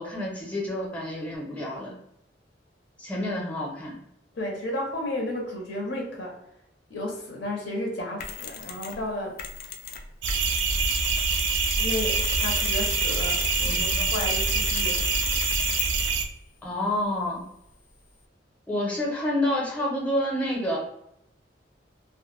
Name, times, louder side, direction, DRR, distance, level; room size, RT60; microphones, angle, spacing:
voice 1, 0.0-2.0 3.0-4.0 13.6-14.0 16.6-17.4 18.7-20.8, left 1 dB, 10° left, -3 dB, 0.7 m, -29 dB
voice 2, 4.3-6.4 6.9-9.4 11.8-15.1, left 1 dB, 75° left, 0 dB, 0.7 m, -33 dB
Mechanisms, 8.2-9.0 9.4-16.2, left 8 dB, 55° left, 0.3 m, -34 dB
sound 1, 10.2-16.2, right 5 dB, 80° right, 0.3 m, -25 dB
2.2 x 2.0 x 3.0 m, 0.77 s
head